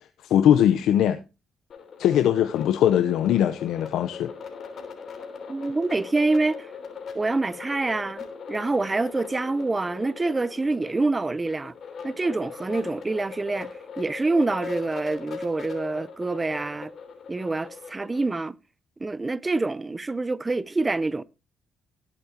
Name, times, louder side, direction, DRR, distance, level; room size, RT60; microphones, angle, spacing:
voice 1, 0.2-1.2 2.0-4.3, left 10 dB, 80° left, 0.7 m, -21 dB
sound 1, 1.7-18.4, left 6 dB, 60° left, 3.1 m, -40 dB
voice 2, 5.5-6.7 7.1-11.7 12.0-13.7 14.0-16.9 17.3-18.6 19.0-21.2, right 3 dB, 20° right, 0.6 m, -26 dB
18.5 x 8.5 x 2.8 m
cardioid pair, 90°, 0 cm